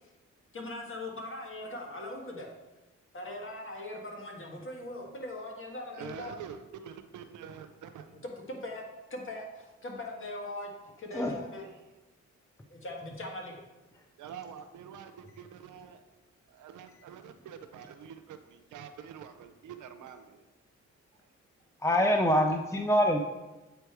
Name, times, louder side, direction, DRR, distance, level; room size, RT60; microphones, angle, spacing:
voice 1, 0.5-2.5 3.1-6.4 8.1-8.8 9.1-10.7 11.0-11.7 12.7-13.6, left 1 dB, 45° left, 0 dB, 1.6 m, -40 dB
voice 2, 6.0-6.6 6.8-8.0 14.2-15.1 15.4-16.0 16.6-18.4 18.7-20.4, right 8 dB, 80° right, 8 dB, 0.6 m, -45 dB
voice 3, 21.8-23.2, equal, 10° left, 4 dB, 0.5 m, -25 dB
8.3 x 3.5 x 4.6 m, 1.1 s
cardioid pair, 65°, 30 cm